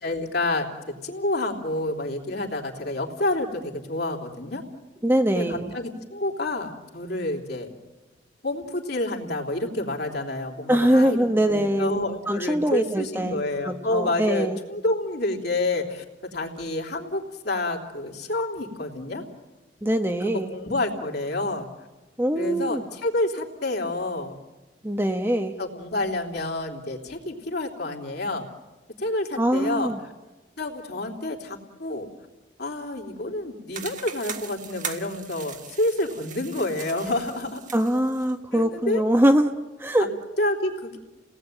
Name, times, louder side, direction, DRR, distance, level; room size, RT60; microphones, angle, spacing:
voice 1, 0.0-4.6 5.3-7.7 8.4-16.0 16.3-19.2 20.2-21.7 22.3-24.4 25.6-28.4 29.0-29.9 30.6-32.1 32.6-37.6 38.5-39.0 40.0-40.1 40.4-41.0, left 2 dB, 55° left, 1 dB, 3.4 m, -28 dB
voice 2, 5.0-5.7 10.7-11.9 12.3-14.6 19.8-20.5 22.2-22.8 24.8-25.5 29.4-30.0 37.7-39.5 39.8-40.1, right 1 dB, 10° right, 5 dB, 1.0 m, -23 dB
sound 1, 33.7-38.3, right 7 dB, 40° right, 1.7 m, -39 dB
30.0 x 18.5 x 9.1 m, 1.1 s
head